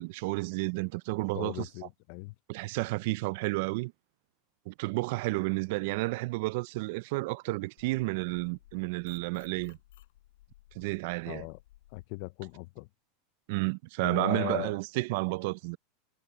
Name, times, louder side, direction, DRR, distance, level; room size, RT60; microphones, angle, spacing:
voice 1, 0.0-1.7 2.5-3.9 4.7-9.8 10.8-11.4 13.5-15.8, right 23 dB, 60° right, 0.4 m, -31 dB
voice 2, 1.4-2.3 11.3-11.6 11.9-12.9 14.0-14.8, left 25 dB, 55° left, 0.5 m, -38 dB
sound 1, 7.8-12.1, left 16 dB, 80° left, 7.7 m, -58 dB
supercardioid pair, 155°, 0 cm